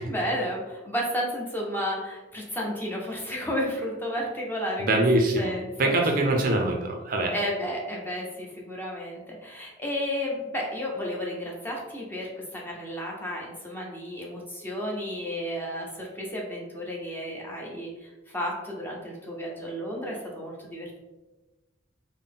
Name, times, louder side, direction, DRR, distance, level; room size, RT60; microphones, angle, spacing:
voice 1, 0.0-5.0 5.4-6.3 7.3-21.0, equal, 10° left, -2 dB, 0.6 m, -32 dB
voice 2, 4.8-5.5 5.8-7.3, right 1 dB, 45° right, 2 dB, 0.4 m, -23 dB
3.8 x 2.0 x 3.6 m, 1.1 s
head